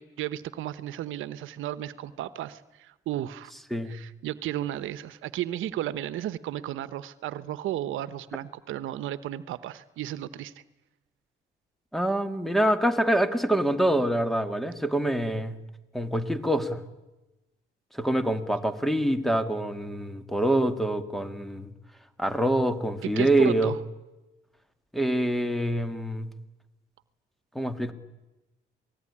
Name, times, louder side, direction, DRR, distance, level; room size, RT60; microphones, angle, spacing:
voice 1, 0.0-3.5 3.8-10.5 23.0-23.8, right 12 dB, 85° right, 15 dB, 1.1 m, -34 dB
voice 2, 11.9-15.6 15.9-16.8 18.0-21.7 22.2-23.7 24.9-26.3 27.6-27.9, right 1 dB, ahead, 9 dB, 2.2 m, -25 dB
27.0 x 20.0 x 10.0 m, 1.0 s
cardioid pair, 90°, 20 cm